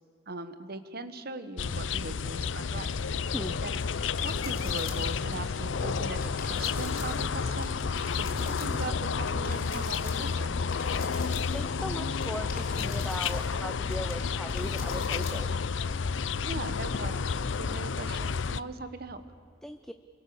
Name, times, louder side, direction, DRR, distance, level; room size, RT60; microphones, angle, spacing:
voice 1, 0.3-2.9 3.6-3.8 4.2-7.8 8.2-10.5 16.5-19.2, right 2 dB, 55° right, 11 dB, 1.5 m, -40 dB
sound 1, 1.6-18.6, left 5 dB, 75° left, 0.6 m, -31 dB
sound 2, 3.7-5.3 5.5-11.8 12.1-15.4, left 4 dB, 50° left, 4.4 m, -44 dB
voice 2, 11.5-15.6 19.6-19.9, equal, ahead, 8 dB, 0.6 m, -38 dB
28.5 x 23.5 x 7.1 m, 2.5 s
head